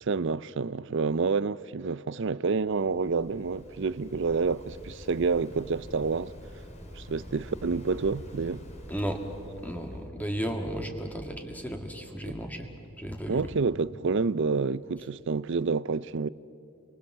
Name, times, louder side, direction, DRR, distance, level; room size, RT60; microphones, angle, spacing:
voice 1, 0.0-6.3 7.0-8.6 12.3-12.4 13.3-16.3, right 4 dB, 60° right, 0.5 m, -28 dB
Waves surf, 2.4-10.1, equal, 30° left, 2.8 m, -46 dB
voice 2, 8.9-9.2 9.6-12.7 13.0-13.5, equal, 5° left, 2.0 m, -34 dB
29.5 x 24.0 x 7.3 m
head